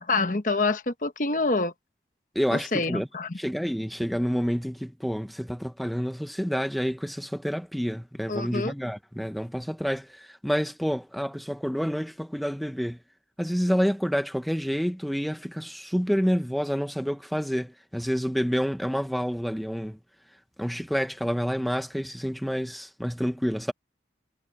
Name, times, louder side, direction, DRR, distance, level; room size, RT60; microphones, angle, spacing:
voice 1, 0.0-1.7 2.5-3.4 8.3-8.7, left 3 dB, 45° left, 1.1 m, -26 dB
voice 2, 2.3-3.1 3.4-13.0 13.4-20.0 20.6-23.7, equal, ahead, 0.9 m, -28 dB
head